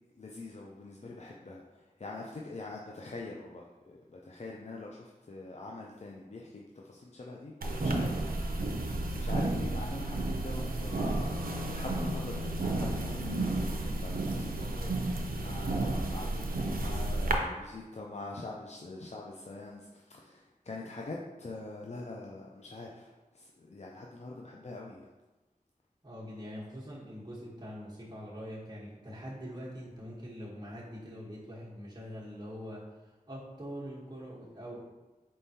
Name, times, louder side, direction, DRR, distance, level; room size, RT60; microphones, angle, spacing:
voice 1, 0.2-7.5 7.8-8.2 9.1-25.1, left 2 dB, 45° left, -2 dB, 0.4 m, -44 dB
sound 1, 7.6-17.3, right 2 dB, 75° right, 0.5 m, -32 dB
voice 2, 26.0-32.9 33.3-34.8, equal, 25° right, -7 dB, 1.1 m, -43 dB
4.3 x 3.6 x 2.8 m, 1.1 s
wide cardioid pair, 40°, 15 cm